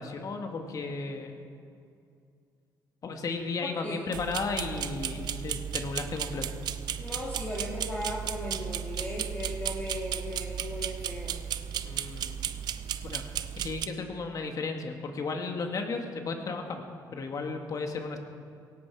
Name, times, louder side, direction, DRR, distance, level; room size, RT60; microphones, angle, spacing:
voice 1, 0.0-1.4 3.0-6.5 11.8-12.4 13.0-13.2 13.6-16.8 17.1-18.2, left 4 dB, 55° left, 4 dB, 2.0 m, -34 dB
sound 1, 4.1-13.9, right 9 dB, 75° right, 0.6 m, -35 dB
voice 2, 7.0-11.4, left 1 dB, 20° left, -4 dB, 2.6 m, -37 dB
18.0 x 16.5 x 4.9 m, 2.4 s
cardioid pair, 85°, 7 cm